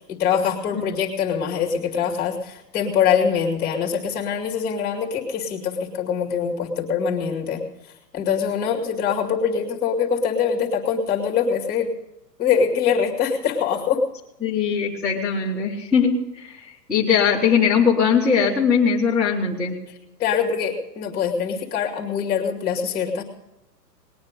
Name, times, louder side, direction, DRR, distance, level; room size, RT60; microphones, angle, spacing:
voice 1, 0.1-7.7 8.1-11.9 12.4-14.0 20.2-23.2, left 7 dB, 20° left, 1 dB, 2.2 m, -23 dB
voice 2, 14.4-16.6 16.9-19.8, left 6 dB, ahead, -5 dB, 1.6 m, -20 dB
20.0 x 9.5 x 5.2 m, 0.95 s
hypercardioid pair, 155°, 49 cm